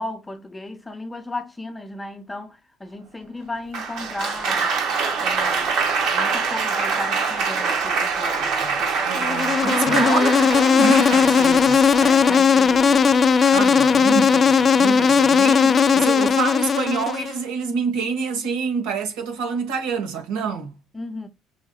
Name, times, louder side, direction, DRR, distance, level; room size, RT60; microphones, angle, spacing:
voice 1, 0.0-4.8 5.2-10.9 12.0-13.1 20.9-21.3, left 2 dB, 10° left, 0.8 m, -35 dB
Applause, 3.7-12.6 13.4-13.8, right 5 dB, 70° right, 1.6 m, -24 dB
voice 2, 9.0-11.8 13.5-20.7, right 5 dB, 90° right, 1.3 m, -27 dB
Insect, 9.1-17.4, left 6 dB, 35° left, 0.4 m, -17 dB
5.7 x 2.7 x 2.3 m
cardioid pair, 115°, 0 cm